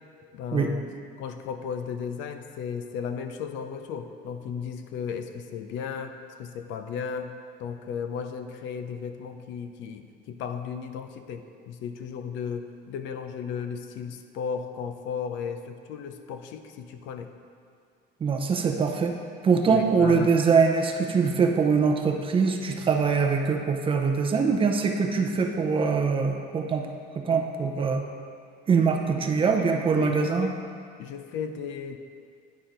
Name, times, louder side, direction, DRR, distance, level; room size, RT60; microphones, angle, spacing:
voice 1, 0.3-0.8 1.2-7.3 7.6-17.3 19.7-20.3 29.4-30.5 31.0-32.0, left 7 dB, 75° left, 8 dB, 0.6 m, -35 dB
voice 2, 18.2-19.2 19.4-26.9 27.1-28.0 28.7-30.5, right 5 dB, 25° right, 3 dB, 0.6 m, -23 dB
9.6 x 4.3 x 5.1 m, 2.2 s
cardioid pair, 140°, 19 cm